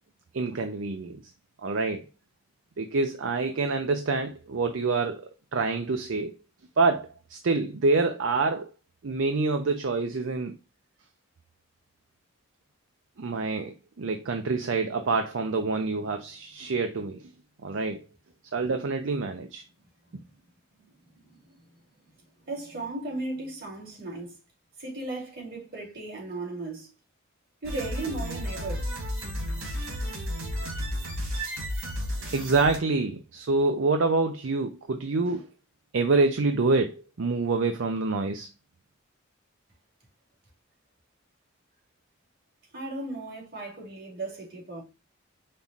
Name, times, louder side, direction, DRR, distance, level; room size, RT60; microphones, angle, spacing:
voice 1, 0.3-1.2 1.6-2.1 2.8-6.3 6.8-8.7 9.0-10.6 13.2-17.3 17.6-18.0 18.5-19.6 32.3-35.5 35.9-38.5, right 3 dB, 65° right, 0.5 m, -26 dB
voice 2, 22.5-24.3 24.8-26.9 27.6-29.0 42.7-44.8, right 2 dB, 45° right, 2.6 m, -36 dB
sound 1, 27.6-32.8, equal, 80° right, 2.0 m, -32 dB
5.4 x 2.4 x 4.0 m
head